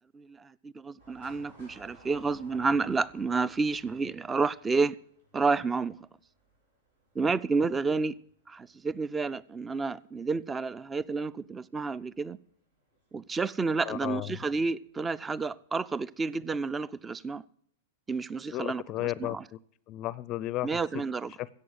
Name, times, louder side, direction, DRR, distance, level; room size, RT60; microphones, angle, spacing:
voice 1, 0.1-5.0 5.3-6.0 7.2-8.1 8.5-12.4 13.1-17.4 18.1-19.4 20.6-21.3, right 4 dB, 15° right, 0.4 m, -30 dB
sound 1, 1.0-15.0 15.3-15.4 16.4-16.7 17.1-17.2, right 1 dB, 85° right, 7.0 m, -60 dB
voice 2, 13.8-14.4 18.5-19.6 19.9-21.0 21.4-21.6, left 16 dB, 40° left, 0.5 m, -34 dB
14.0 x 8.1 x 7.9 m
hypercardioid pair, 110°, 0 cm